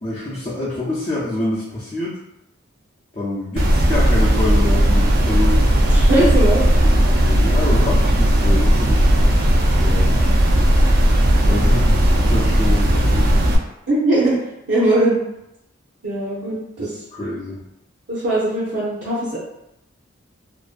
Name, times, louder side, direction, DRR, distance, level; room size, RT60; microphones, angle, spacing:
voice 1, 0.0-2.2 3.1-5.6 6.8-9.3 9.8-10.1 11.4-13.3 16.8-16.9 17.1-17.6, left 2 dB, 30° left, -9 dB, 0.5 m, -26 dB
sound 1, 3.6-13.6, equal, 50° right, 0.3 m, -16 dB
voice 2, 5.7-6.6 13.9-15.2 16.0-17.0 18.1-19.4, right 1 dB, 70° right, -10 dB, 0.7 m, -20 dB
2.5 x 2.2 x 2.4 m, 0.86 s
head